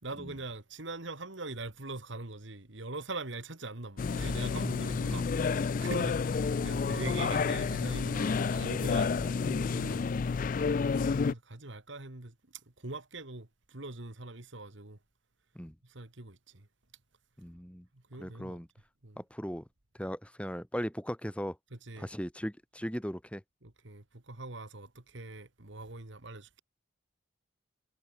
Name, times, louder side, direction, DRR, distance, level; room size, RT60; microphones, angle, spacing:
voice 1, 0.0-5.3 5.8-10.3 11.3-15.0 15.8-16.7 17.9-18.6 19.0-19.2 21.8-22.1 23.6-26.6, right 2 dB, 65° right, 2.0 m, -42 dB
sound 1, 4.0-11.3, left 5 dB, 40° left, 0.3 m, -30 dB
voice 2, 17.4-17.9 18.2-18.7 19.2-19.7 19.9-21.6 22.0-23.4, equal, 5° left, 5.2 m, -38 dB
head